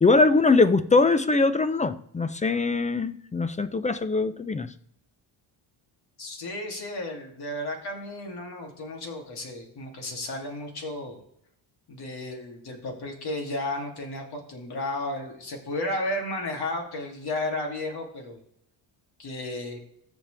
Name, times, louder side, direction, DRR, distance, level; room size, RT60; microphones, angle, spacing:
voice 1, 0.0-4.7, left 3 dB, 15° left, 0.4 m, -22 dB
voice 2, 6.2-11.2 11.9-18.4 19.2-19.8, left 1 dB, 50° left, 2.8 m, -33 dB
14.5 x 5.1 x 3.4 m
cardioid pair, 125°, 48 cm